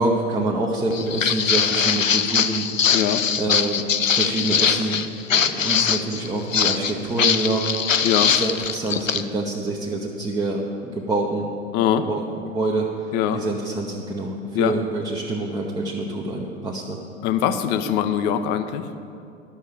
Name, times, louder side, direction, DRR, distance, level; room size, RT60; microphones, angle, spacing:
voice 1, 0.0-3.0 3.4-3.9 4.1-5.0 5.3-11.5 12.1-12.9 13.3-17.0, right 2 dB, 10° right, -3 dB, 0.8 m, -26 dB
Walk footsteps, 0.9-9.2, left 7 dB, 85° left, 0.5 m, -22 dB
voice 2, 2.9-3.2 8.0-8.3 11.7-12.0 13.1-13.4 14.5-14.7 17.2-18.9, left 10 dB, 30° left, 10 dB, 0.6 m, -22 dB
11.5 x 6.4 x 7.2 m, 2.5 s
figure-of-eight pair, 95°, 38 cm